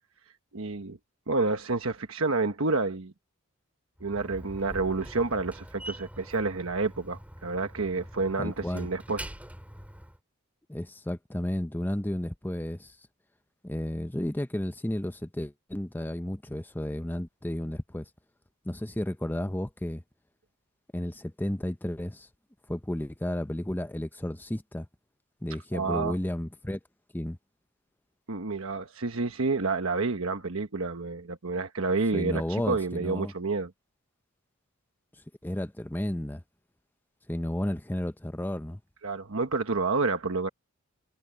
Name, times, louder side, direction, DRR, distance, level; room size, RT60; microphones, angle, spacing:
voice 1, 0.5-1.0 1.3-3.1 4.0-9.2 25.7-26.2 28.3-33.7 39.0-40.5, right 3 dB, 70° right, 1.3 m, -29 dB
Slam, 4.0-10.2, equal, 5° right, 4.3 m, -44 dB
voice 2, 8.4-8.9 10.7-12.9 13.6-18.1 18.6-20.0 20.9-22.3 22.7-24.9 25.4-26.8 27.1-27.4 32.1-33.3 35.4-36.4 37.3-38.8, left 1 dB, 10° left, 0.7 m, -32 dB
head